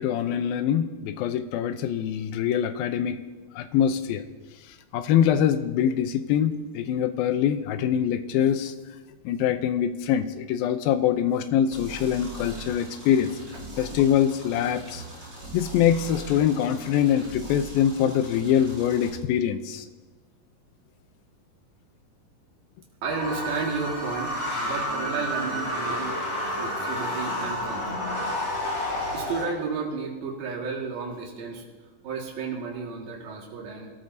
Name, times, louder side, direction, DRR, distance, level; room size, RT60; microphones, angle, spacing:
voice 1, 0.0-3.2 3.6-4.3 4.9-8.7 9.3-13.3 13.8-15.0 15.5-19.9, left 9 dB, 85° left, 10 dB, 2.5 m, -24 dB
sound 1, 11.7-19.1, right 1 dB, 20° right, 4.5 m, -41 dB
voice 2, 23.0-26.2 26.6-28.0 29.1-31.6 32.0-33.9, right 5 dB, 75° right, -2 dB, 3.8 m, -32 dB
sound 2, 23.1-29.4, equal, 35° left, 2.8 m, -30 dB
23.0 x 13.5 x 2.8 m, 1.2 s
omnidirectional pair, 4.2 m